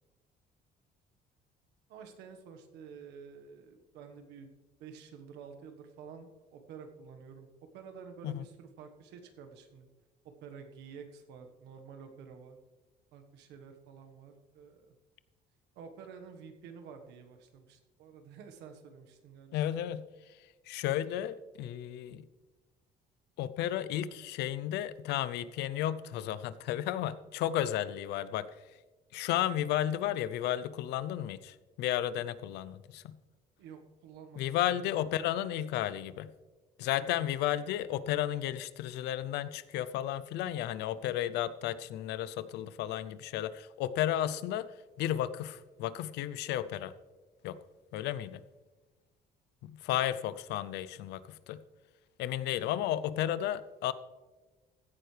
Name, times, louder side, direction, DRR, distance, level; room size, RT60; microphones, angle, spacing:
voice 1, 1.9-4.5 4.8-7.5 7.7-9.9 10.4-12.6 13.1-14.9 15.7-19.7 33.6-34.9 37.0-37.3, right 6 dB, 85° right, 5 dB, 1.4 m, -50 dB
voice 2, 19.5-20.0 20.7-22.2 23.4-28.5 29.1-33.2 34.4-36.3 36.8-44.7 45.0-46.9 47.4-47.6 47.9-48.4 49.6-51.6 52.2-53.9, left 12 dB, 85° left, 16 dB, 0.6 m, -33 dB
15.5 x 10.5 x 3.3 m, 1.3 s
cardioid pair, 110°, 17 cm